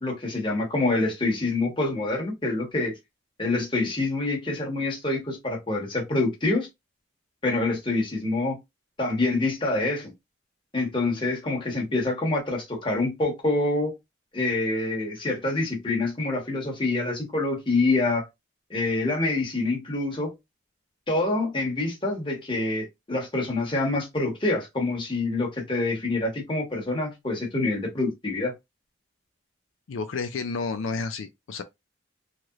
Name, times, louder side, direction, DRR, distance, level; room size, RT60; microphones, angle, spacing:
voice 1, 0.0-3.0 3.4-6.7 7.4-8.6 9.0-10.1 10.7-13.9 14.3-18.3 18.7-20.3 21.1-28.5, left 2 dB, 25° left, 1.1 m, -26 dB
voice 2, 29.9-31.6, left 4 dB, 80° left, 0.4 m, -31 dB
3.1 x 2.8 x 2.4 m
head